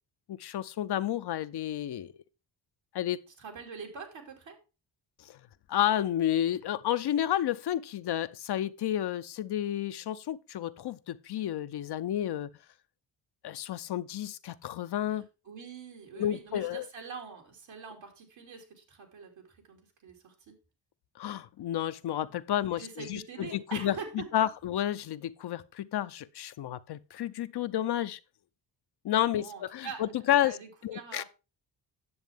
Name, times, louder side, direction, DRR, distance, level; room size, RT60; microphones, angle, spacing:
voice 1, 0.3-2.1 2.9-3.2 5.2-5.4 5.7-12.5 13.4-15.3 16.1-16.9 21.2-28.2 29.0-30.6 30.8-31.2, left 11 dB, 60° left, 0.7 m, -31 dB
voice 2, 3.4-4.6 15.4-20.5 22.6-24.1 24.4-24.5 29.3-30.0 30.4-31.2, right 5 dB, 80° right, 3.0 m, -44 dB
9.6 x 7.1 x 3.5 m
cardioid pair, 65°, 45 cm